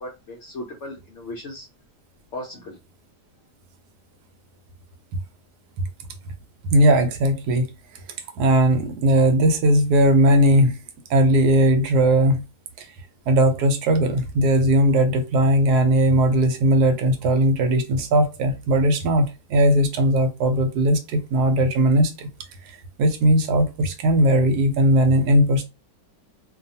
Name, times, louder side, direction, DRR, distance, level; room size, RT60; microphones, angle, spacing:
voice 1, 0.0-1.7 2.3-2.8, left 1 dB, 65° left, 0.7 m, -36 dB
voice 2, 6.7-7.7 8.4-10.8 11.1-12.4 12.8-12.9 13.3-22.3 23.0-25.6, right 1 dB, 75° right, 1.1 m, -18 dB
2.7 x 2.3 x 2.6 m
omnidirectional pair, 1.8 m